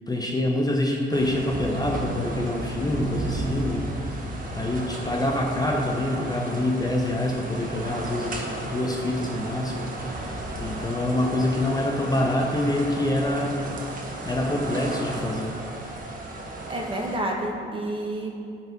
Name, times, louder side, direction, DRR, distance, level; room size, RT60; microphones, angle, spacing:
voice 1, 0.1-4.2 4.6-13.6 14.2-15.6, left 1 dB, 20° left, 0 dB, 0.8 m, -26 dB
sound 1, 1.1-17.2, right 2 dB, 45° right, 1.5 m, -34 dB
voice 2, 16.7-18.3, right 1 dB, 25° right, 0 dB, 1.5 m, -29 dB
12.0 x 4.3 x 5.3 m, 2.6 s
cardioid pair, 90°, 20 cm